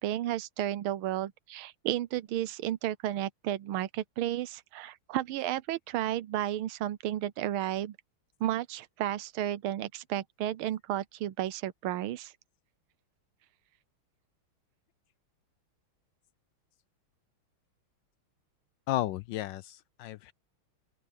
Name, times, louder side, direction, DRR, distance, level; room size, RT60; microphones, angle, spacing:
voice 1, 0.0-8.0 8.4-12.3, right 12 dB, 85° right, 1.6 m, -33 dB
voice 2, 18.9-20.3, left 14 dB, 75° left, 1.1 m, -33 dB
open air
omnidirectional pair, 2.3 m